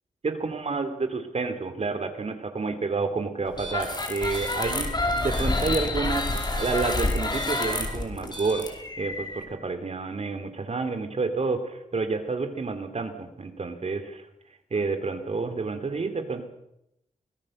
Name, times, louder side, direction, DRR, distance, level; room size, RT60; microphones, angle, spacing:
voice 1, 0.2-4.9 5.2-14.2 14.7-16.4, right 4 dB, 55° right, 8 dB, 3.3 m, -29 dB
sound 1, 3.5-9.4, left 2 dB, 30° left, 4.6 m, -28 dB
24.5 x 20.0 x 6.6 m, 0.80 s
wide cardioid pair, 85°, 13 cm